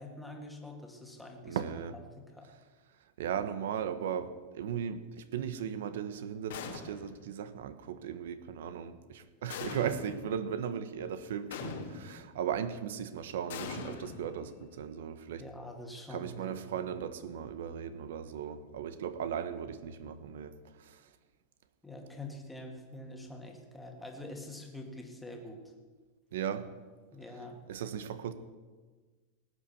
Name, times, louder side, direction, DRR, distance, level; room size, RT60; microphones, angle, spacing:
voice 1, 0.0-1.6 1.9-2.5 15.4-16.8 21.8-25.7 27.1-27.6, left 1 dB, 5° left, 1 dB, 1.9 m, -45 dB
voice 2, 1.5-1.9 3.2-15.4 16.1-20.5 20.9-21.0 26.3-26.7 27.7-28.3, right 8 dB, 85° right, 12 dB, 1.2 m, -37 dB
sound 1, 6.5-7.3 9.5-10.3 11.5-12.3 13.5-14.7, left 6 dB, 80° left, 2.0 m, -42 dB
19.0 x 8.5 x 7.2 m, 1.4 s
supercardioid pair, 170°, 0 cm